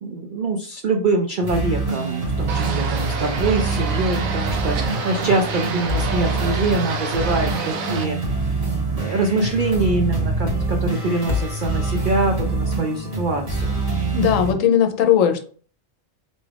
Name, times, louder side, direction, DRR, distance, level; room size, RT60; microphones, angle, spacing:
voice 1, 0.0-8.2 8.4-8.6 9.0-13.8, right 3 dB, 70° right, 3 dB, 0.4 m, -24 dB
sound 1, 1.4-14.5, right 3 dB, 55° right, 2.0 m, -25 dB
sound 2, 2.5-8.0, right 5 dB, 85° right, 1.1 m, -29 dB
sound 3, 2.9-3.4 3.7-3.8 5.6-6.7 8.4-9.3 11.1-12.1, left 5 dB, 40° left, 1.0 m, -31 dB
voice 2, 14.1-15.4, left 9 dB, 75° left, 7 dB, 1.0 m, -17 dB
4.0 x 2.4 x 3.3 m, 0.43 s
omnidirectional pair, 1.4 m